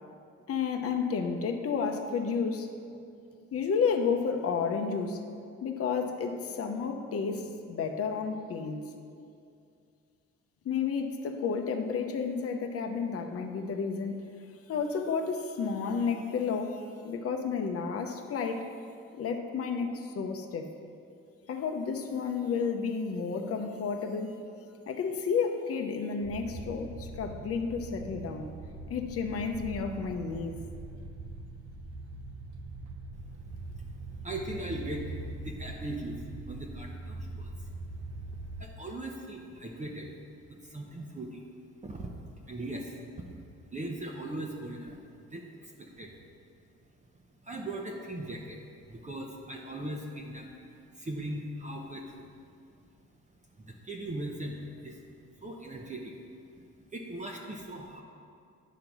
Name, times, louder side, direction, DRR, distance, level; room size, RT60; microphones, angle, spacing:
voice 1, 0.5-2.7 3.5-5.2 5.6-8.9 10.6-14.3 14.7-18.6 19.1-20.7 21.5-24.4 24.9-28.5 28.9-30.6, left 5 dB, 50° left, 4 dB, 0.8 m, -31 dB
sound 1, 26.2-38.7, right 2 dB, 65° right, 0.9 m, -42 dB
voice 2, 34.2-37.5 38.6-40.1 40.5-41.4 41.8-42.1 42.5-43.3 43.7-45.0 45.3-46.2 47.4-48.6 48.9-52.3 53.6-55.0 55.4-56.1 56.9-58.0, right 1 dB, 25° right, -1 dB, 0.9 m, -39 dB
10.0 x 3.8 x 6.0 m, 2.4 s
cardioid pair, 90°, 30 cm